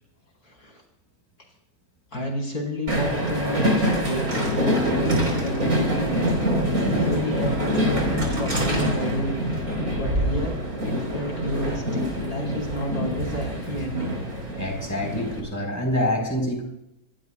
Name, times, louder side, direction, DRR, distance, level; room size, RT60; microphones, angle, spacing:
voice 1, 0.4-0.8 2.1-6.3 6.6-14.2, equal, 75° left, 0 dB, 4.9 m, -31 dB
Train, 2.9-15.4, equal, 65° right, 4.8 m, -25 dB
voice 2, 14.6-16.6, left 1 dB, 10° left, 1 dB, 4.5 m, -26 dB
27.0 x 19.0 x 2.4 m, 0.83 s
omnidirectional pair, 1.7 m